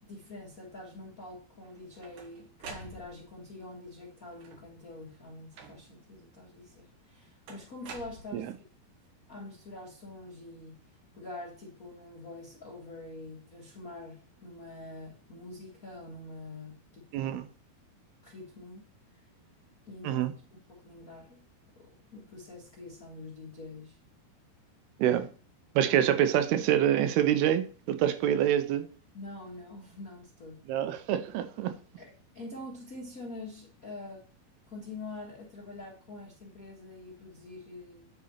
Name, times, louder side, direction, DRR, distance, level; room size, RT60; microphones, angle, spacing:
voice 1, 0.0-8.5 9.3-17.4 18.2-18.8 19.8-20.3 20.7-21.4 21.8-24.0 29.1-30.7 32.0-34.3 34.7-38.1, left 2 dB, 75° left, 0.7 m, -45 dB
sound 1, 1.6-3.5 4.3-4.8 5.5-6.1 7.5-8.8, right 4 dB, 65° right, 2.4 m, -48 dB
voice 2, 17.1-17.5 20.0-20.3 25.0-25.3 25.8-28.9 30.7-31.7, right 10 dB, 85° right, 2.6 m, -26 dB
9.7 x 4.1 x 4.3 m
omnidirectional pair, 4.6 m